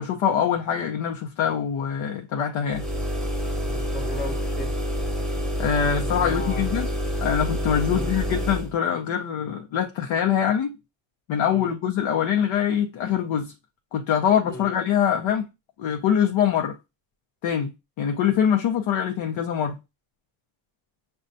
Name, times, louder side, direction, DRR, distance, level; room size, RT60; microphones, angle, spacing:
voice 1, 0.0-2.9 5.6-6.9 7.2-10.7 11.3-13.5 13.9-15.5 15.8-16.8 17.4-17.7 18.0-19.8, left 8 dB, 70° left, 0.7 m, -24 dB
sound 1, 2.7-8.7, equal, ahead, 1.0 m, -27 dB
voice 2, 3.6-4.7 6.0-6.6 7.9-8.1 11.5-11.7 14.4-14.7, left 1 dB, 20° left, 0.8 m, -36 dB
6.3 x 2.3 x 2.6 m
cardioid pair, 115°, 48 cm